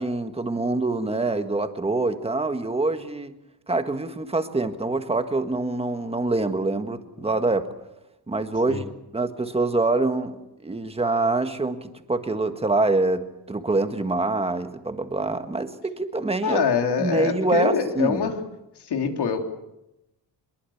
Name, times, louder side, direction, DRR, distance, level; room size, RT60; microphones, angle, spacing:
voice 1, 0.0-3.3 3.7-7.7 8.3-8.8 9.1-16.6 17.0-18.2, right 2 dB, 15° right, 8 dB, 1.7 m, -25 dB
voice 2, 16.4-18.4 18.8-19.4, left 6 dB, 75° left, 4 dB, 3.5 m, -24 dB
24.0 x 22.0 x 7.3 m, 0.92 s
wide cardioid pair, 145°, 40 cm